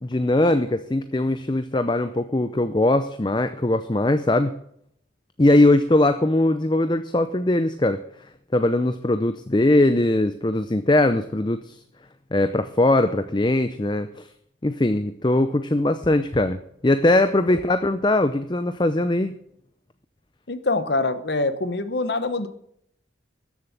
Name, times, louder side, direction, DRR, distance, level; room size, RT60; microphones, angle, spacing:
voice 1, 0.0-4.5 5.4-8.0 8.5-11.8 12.3-14.3 14.6-19.3, left 1 dB, 25° left, 10 dB, 0.6 m, -21 dB
voice 2, 20.5-22.5, left 2 dB, 60° left, 12 dB, 1.1 m, -24 dB
13.5 x 7.4 x 7.3 m, 0.68 s
head